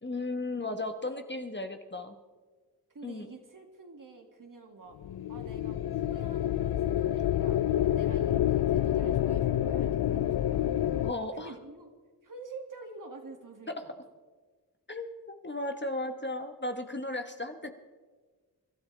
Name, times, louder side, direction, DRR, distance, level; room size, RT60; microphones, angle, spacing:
voice 1, 0.0-2.2 3.0-3.3 11.0-11.5 13.7-13.8 14.9-17.7, left 2 dB, 25° left, 6 dB, 1.3 m, -35 dB
voice 2, 2.9-5.0 5.3-10.8 11.3-11.9 12.2-13.9, right 3 dB, 50° right, 3 dB, 2.3 m, -48 dB
sound 1, 5.0-11.1, left 11 dB, 65° left, 0.5 m, -28 dB
25.5 x 12.5 x 3.4 m, 1.4 s
cardioid pair, 40°, 40 cm